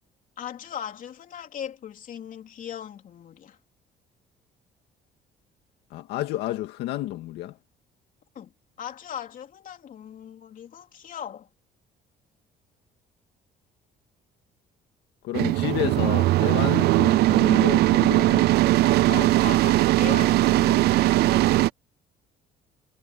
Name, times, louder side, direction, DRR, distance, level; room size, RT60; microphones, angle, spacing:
voice 1, 0.4-3.6 8.3-8.5 8.8-11.5 19.1-21.5, left 9 dB, 50° left, 3.3 m, -38 dB
voice 2, 5.9-7.6 15.2-18.5, left 15 dB, 85° left, 2.0 m, -31 dB
sound 1, 15.3-21.7, right 17 dB, 70° right, 0.5 m, -20 dB
cardioid pair, 110°, 17 cm